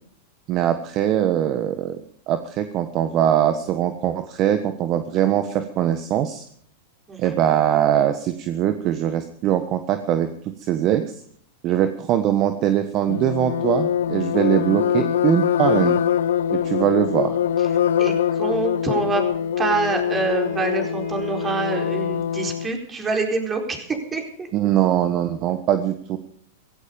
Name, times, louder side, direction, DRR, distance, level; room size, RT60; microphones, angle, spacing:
voice 1, 0.5-2.0 2.3-6.4 7.2-11.1 11.6-16.0 16.5-17.4 24.5-26.2, right 11 dB, 40° right, 9 dB, 1.3 m, -22 dB
voice 2, 7.1-7.4 18.0-19.2 19.6-24.5, right 3 dB, 20° right, 3 dB, 4.4 m, -26 dB
sound 1, 13.1-22.7, left 9 dB, 80° left, 0.8 m, -23 dB
Wind instrument woodwind instrument, 19.0-22.3, right 9 dB, 65° right, 7.8 m, -43 dB
16.5 x 16.5 x 5.3 m, 0.62 s
hypercardioid pair, 125°, 0 cm